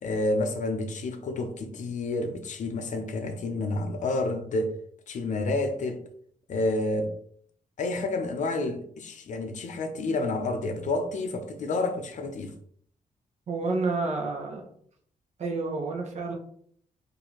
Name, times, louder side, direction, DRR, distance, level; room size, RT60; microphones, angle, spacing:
voice 1, 0.0-4.7 5.1-6.0 6.5-7.1 7.8-12.5, left 2 dB, 55° left, 6 dB, 0.5 m, -29 dB
voice 2, 13.5-14.7 15.4-16.3, right 3 dB, 50° right, 1 dB, 0.8 m, -29 dB
4.4 x 2.6 x 2.9 m, 0.62 s
wide cardioid pair, 180°, 15 cm